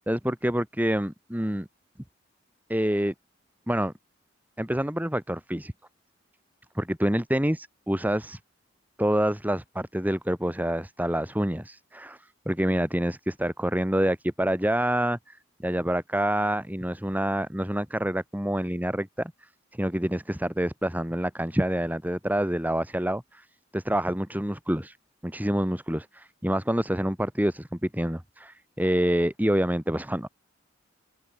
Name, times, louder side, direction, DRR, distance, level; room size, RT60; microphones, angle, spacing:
voice 1, 0.0-1.7 2.7-3.1 3.7-3.9 4.6-5.7 6.7-8.4 9.0-12.2 12.5-15.4 15.6-19.3 19.8-23.4 23.7-25.0 25.2-30.3, equal, 10° right, 2.8 m, -27 dB
open air
head